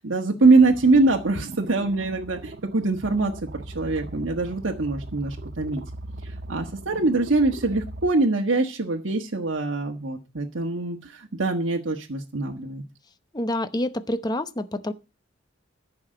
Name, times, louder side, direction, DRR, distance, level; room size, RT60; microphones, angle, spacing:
voice 1, 0.0-3.3 3.7-5.8 6.2-12.8, right 3 dB, 80° right, 1.4 m, -23 dB
sound 1, 0.6-8.1, right 2 dB, 50° right, 0.7 m, -39 dB
voice 2, 13.3-14.9, left 1 dB, 20° left, 0.8 m, -27 dB
14.0 x 5.9 x 7.7 m
head